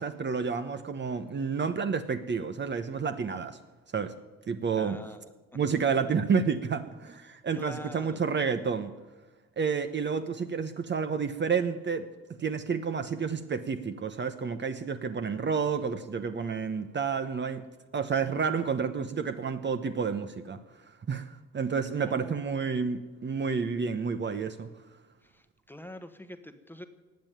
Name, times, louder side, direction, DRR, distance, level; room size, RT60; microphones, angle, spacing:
voice 1, 0.0-3.6 3.9-4.1 4.5-5.0 5.5-8.9 9.6-12.1 12.4-17.6 17.9-20.6 21.1-24.7, right 5 dB, 35° right, 9 dB, 1.0 m, -30 dB
voice 2, 4.8-5.2 7.5-8.2 22.0-22.5 25.2-26.8, left 1 dB, 5° left, 8 dB, 1.2 m, -44 dB
18.5 x 7.3 x 9.2 m, 1.2 s
cardioid pair, 90°, 30 cm